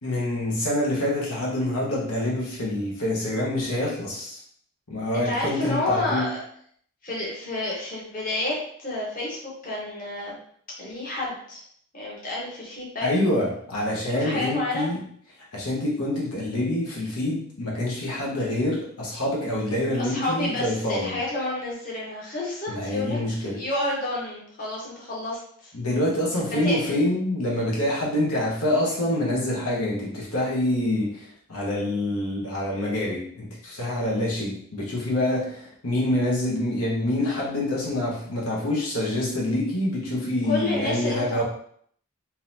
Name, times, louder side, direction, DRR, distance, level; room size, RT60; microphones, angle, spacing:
voice 1, 0.0-4.4 4.9-6.3 13.0-15.0 15.5-21.2 22.7-23.6 25.7-41.4, left 1 dB, 90° left, -4 dB, 1.2 m, -26 dB
voice 2, 5.1-6.4 7.0-10.4 10.8-11.6 11.9-13.1 14.1-14.9 20.0-23.2 23.6-25.7 26.6-27.0 40.5-41.4, left 2 dB, 40° left, -5 dB, 1.0 m, -30 dB
3.9 x 2.9 x 2.7 m, 0.62 s
head